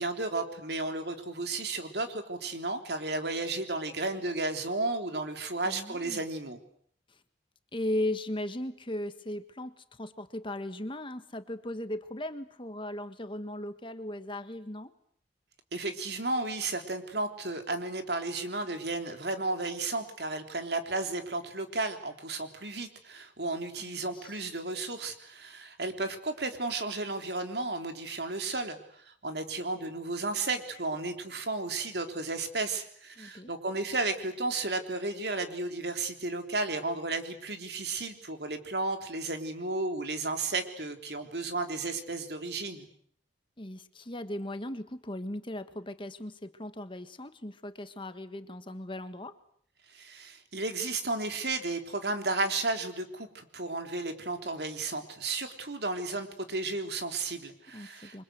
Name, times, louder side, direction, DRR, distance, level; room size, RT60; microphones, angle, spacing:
voice 1, 0.0-6.6 15.7-42.9 49.9-58.2, right 3 dB, 65° right, 6 dB, 3.6 m, -33 dB
voice 2, 5.6-6.2 7.1-7.2 7.7-14.9 23.8-24.4 33.2-33.5 43.6-49.4 57.7-58.2, left 1 dB, 30° left, 10 dB, 1.6 m, -37 dB
28.5 x 24.5 x 8.1 m, 0.63 s
head